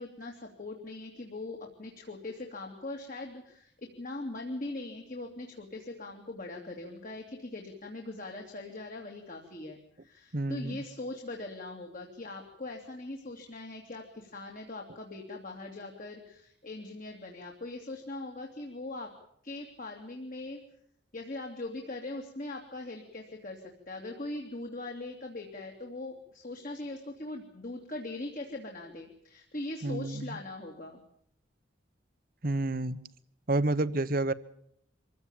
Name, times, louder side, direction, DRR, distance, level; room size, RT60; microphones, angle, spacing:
voice 1, 0.0-19.1 19.4-20.6 21.1-31.0, left 2 dB, 45° left, 2 dB, 2.9 m, -41 dB
voice 2, 10.3-10.8 29.8-30.2 32.4-33.0 33.5-34.3, right 2 dB, 50° right, 15 dB, 1.1 m, -29 dB
25.0 x 16.0 x 9.0 m, 0.70 s
head